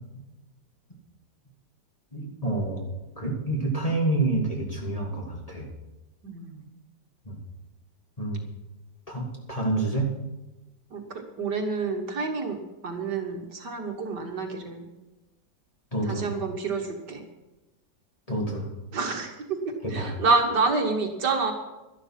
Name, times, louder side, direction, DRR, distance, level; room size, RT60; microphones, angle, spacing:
voice 1, 2.1-2.9 3.2-5.7 7.2-7.4 8.2-8.4 9.1-10.1 15.9-16.3 18.3-18.7 19.8-20.2, right 2 dB, 20° left, -2 dB, 2.6 m, -28 dB
voice 2, 6.2-6.7 10.9-14.9 16.1-17.2 18.9-21.5, right 4 dB, 60° right, 4 dB, 1.9 m, -28 dB
12.0 x 11.5 x 5.8 m, 1.0 s
omnidirectional pair, 2.1 m